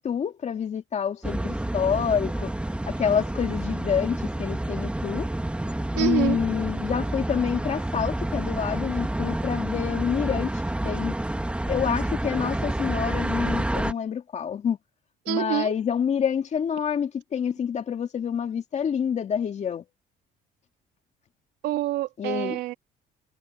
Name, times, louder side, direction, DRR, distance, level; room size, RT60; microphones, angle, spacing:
voice 1, 0.0-2.5 2.9-5.3 5.9-10.5 10.8-11.1 11.7-14.8 15.3-19.8 22.2-22.6, left 7 dB, 45° left, 2.1 m, -27 dB
Mexico City - Durango Avenue MS, 1.2-13.9, right 1 dB, 5° right, 2.0 m, -29 dB
voice 2, 6.0-6.4 15.2-15.7 21.6-22.7, right 15 dB, 85° right, 3.0 m, -26 dB
cardioid pair, 110°, 17 cm